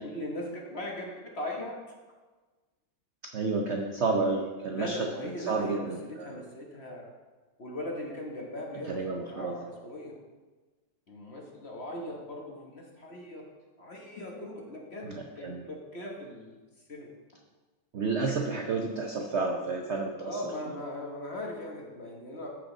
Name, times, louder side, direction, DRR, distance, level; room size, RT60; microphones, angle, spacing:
voice 1, 0.0-1.8 4.7-7.1 7.6-10.2 11.1-13.5 13.8-16.5 16.9-17.1 20.2-22.5, left 1 dB, 40° left, 0 dB, 1.2 m, -39 dB
voice 2, 3.3-5.0 5.5-6.0 8.9-9.6 15.0-15.6 17.9-20.1, right 3 dB, 75° right, 2 dB, 0.6 m, -30 dB
14.0 x 5.1 x 3.9 m, 1.3 s
omnidirectional pair, 2.1 m